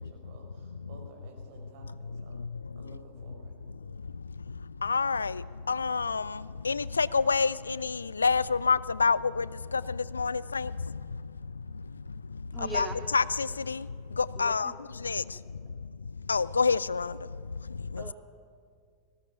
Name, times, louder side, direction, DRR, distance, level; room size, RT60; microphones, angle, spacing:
voice 1, 0.0-2.4 2.8-3.5, right 3 dB, 50° right, 5.4 m, -53 dB
voice 2, 4.8-5.3 5.7-6.2 6.7-7.5 7.8-9.4 10.2-10.7 12.7-12.9 13.1-13.8 14.4-14.7 15.0-15.2 16.3-17.1, left 5 dB, 75° left, 0.4 m, -26 dB
voice 3, 12.5-13.0 14.4-14.7 18.0-18.1, right 3 dB, 10° right, 2.3 m, -40 dB
19.5 x 16.5 x 8.4 m
figure-of-eight pair, 90°, 0 cm